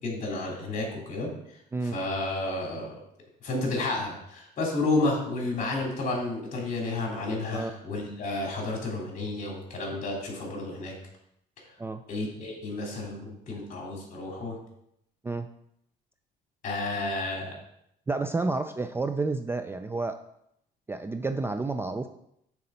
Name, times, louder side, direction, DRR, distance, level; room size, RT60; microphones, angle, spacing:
voice 1, 0.0-1.3 1.9-2.9 3.4-10.9 12.1-14.6 16.6-17.5, left 2 dB, 50° left, -1 dB, 2.9 m, -31 dB
voice 2, 18.1-20.2 20.9-22.1, right 3 dB, 15° right, 8 dB, 0.4 m, -30 dB
6.6 x 4.2 x 5.6 m, 0.76 s
cardioid pair, 110°, 17 cm